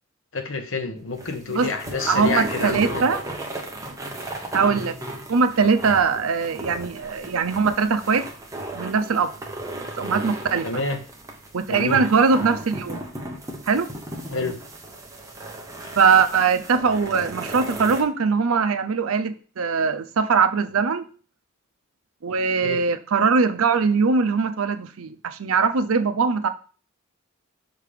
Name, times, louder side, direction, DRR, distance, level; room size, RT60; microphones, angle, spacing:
voice 1, 0.3-3.1 10.6-11.0 11.7-12.0 14.3-14.6 22.6-22.8, left 3 dB, 65° left, 7 dB, 0.9 m, -28 dB
sound 1, 1.0-18.0, right 1 dB, 15° right, 0.9 m, -35 dB
voice 2, 2.1-3.2 4.5-5.0 5.3-8.3 8.7-9.3 10.0-10.8 11.5-13.1 13.7-13.9 16.0-21.1 22.2-26.5, right 5 dB, 80° right, 10 dB, 0.6 m, -21 dB
5.6 x 3.4 x 5.0 m, 0.39 s
head